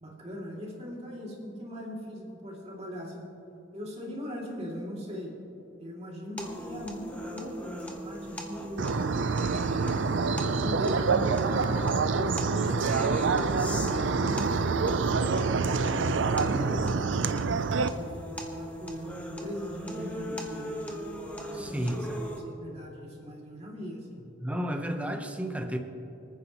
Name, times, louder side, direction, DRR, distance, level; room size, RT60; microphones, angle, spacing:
voice 1, 0.0-3.4 3.7-5.3 5.8-9.1 9.6-10.3 10.6-15.0 15.5-20.8 21.3-22.1 22.4-24.2, equal, 35° right, -3 dB, 2.6 m, -40 dB
sound 1, 6.4-22.4, equal, 10° left, 1.3 m, -40 dB
sound 2, 8.8-17.9, right 4 dB, 75° right, 0.5 m, -26 dB
voice 2, 21.5-22.2 24.4-25.8, equal, 5° right, 4 dB, 0.9 m, -32 dB
27.0 x 9.5 x 3.0 m, 3.0 s
head